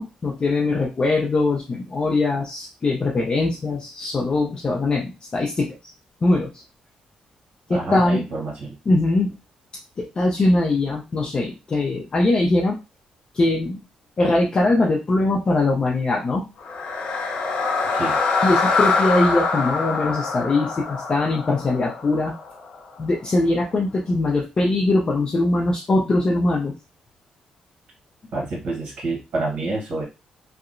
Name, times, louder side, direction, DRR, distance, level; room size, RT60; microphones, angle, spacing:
voice 1, 0.0-5.9 6.2-6.6 7.7-8.3 8.9-9.3 10.0-12.8 13.3-13.8 14.2-16.5 18.4-22.4 23.0-26.7, left 2 dB, 35° left, -1 dB, 0.5 m, -21 dB
voice 2, 7.7-8.8 17.9-18.2 28.3-30.0, right 2 dB, 70° right, -4 dB, 1.0 m, -28 dB
sound 1, 16.6-22.7, left 4 dB, 75° left, 0.7 m, -24 dB
2.8 x 2.1 x 2.5 m, 0.28 s
cardioid pair, 85°, 2 cm